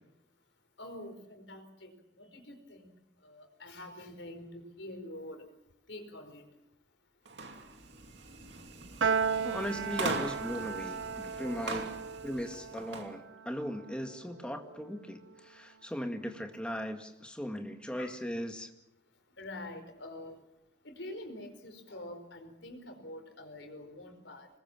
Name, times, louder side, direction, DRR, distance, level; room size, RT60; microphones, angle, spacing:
voice 1, 0.8-1.9 2.2-2.9 3.2-5.4 5.9-6.4 18.0-18.2 19.4-20.4 20.8-24.5, left 1 dB, 80° left, 6 dB, 4.8 m, -46 dB
sound 1, 7.3-13.1, right 3 dB, 70° right, 2.7 m, -41 dB
Piano, 9.0-15.5, right 6 dB, 90° right, 0.8 m, -36 dB
voice 2, 9.4-11.9 12.2-18.7, equal, 5° left, 5 dB, 2.0 m, -38 dB
26.5 x 20.5 x 7.3 m, 0.85 s
head